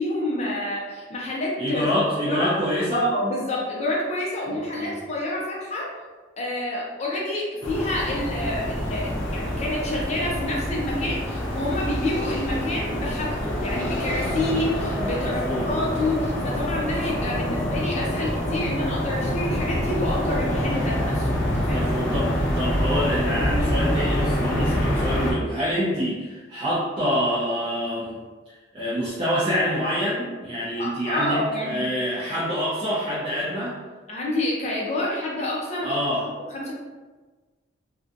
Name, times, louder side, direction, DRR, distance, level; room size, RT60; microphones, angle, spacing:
voice 1, 0.0-1.9 2.2-2.6 2.9-5.9 6.4-22.0 24.5-24.8 28.8-28.9 30.8-31.9 34.1-36.0 36.3-36.7, left 1 dB, 35° left, -4 dB, 0.5 m, -28 dB
voice 2, 1.6-3.1 4.5-5.0 15.1-15.7 21.7-28.2 28.7-33.7 35.8-36.2, equal, 30° right, -10 dB, 0.5 m, -26 dB
sound 1, 7.6-25.3, equal, 80° left, 0.6 m, -26 dB
2.5 x 2.2 x 2.5 m, 1.3 s
head